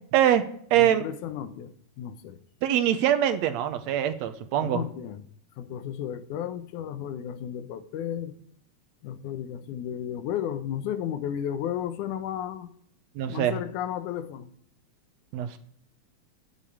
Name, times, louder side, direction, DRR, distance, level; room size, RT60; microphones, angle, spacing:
voice 1, 0.1-1.1 2.6-4.8 13.2-13.6 15.3-15.6, right 11 dB, 75° right, 1.9 m, -24 dB
voice 2, 0.7-2.4 4.6-5.2 5.6-8.3 9.0-12.7 13.3-14.5, left 10 dB, 90° left, 2.3 m, -33 dB
11.5 x 6.9 x 8.6 m
omnidirectional pair, 3.4 m